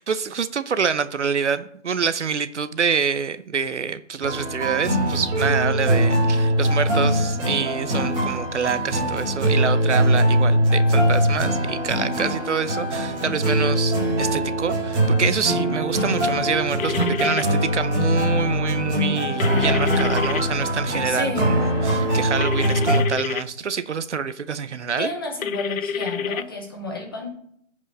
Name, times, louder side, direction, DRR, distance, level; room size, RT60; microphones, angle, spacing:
voice 1, 0.0-25.1, right 6 dB, 60° right, 13 dB, 0.7 m, -26 dB
sound 1, 4.2-23.0, equal, 10° right, 2.3 m, -22 dB
sound 2, 16.8-17.4 19.4-20.4 22.4-23.4 25.4-26.4, left 6 dB, 80° left, 0.6 m, -28 dB
voice 2, 21.0-21.5 25.0-27.3, left 2 dB, 15° left, 2 dB, 0.9 m, -31 dB
15.0 x 5.3 x 3.3 m, 0.69 s
hypercardioid pair, 160°, 40 cm